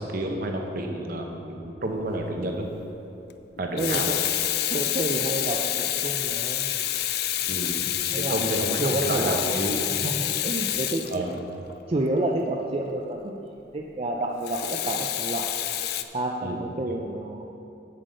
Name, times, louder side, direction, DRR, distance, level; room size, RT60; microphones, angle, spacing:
voice 1, 0.0-2.7 3.6-4.1 7.5-7.7 8.1-8.8 9.1-9.7 11.1-11.3 16.4-16.6, right 1 dB, 55° right, 2 dB, 1.0 m, -30 dB
Water tap faucet / Sink (filling or washing), 2.0-2.2 3.6-11.8 14.4-16.0, left 12 dB, 60° left, 0.4 m, -28 dB
voice 2, 3.8-4.2 4.7-6.7 7.8-9.6 10.0-11.4 11.9-13.5 13.7-15.5 16.1-17.4, right 2 dB, 35° right, 0 dB, 0.5 m, -29 dB
8.3 x 7.5 x 5.1 m, 2.9 s
head